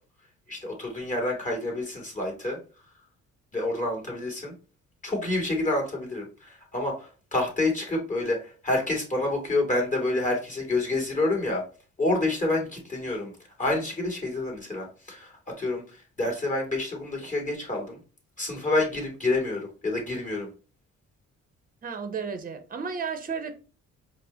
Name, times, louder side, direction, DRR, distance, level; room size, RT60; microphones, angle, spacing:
voice 1, 0.5-2.6 3.5-4.5 5.0-11.6 12.0-13.3 13.6-18.0 18.4-20.5, left 2 dB, 25° left, 2.1 m, -28 dB
voice 2, 21.8-23.5, right 6 dB, 30° right, 0.7 m, -33 dB
4.7 x 2.1 x 3.9 m
cardioid pair, 90°, 30 cm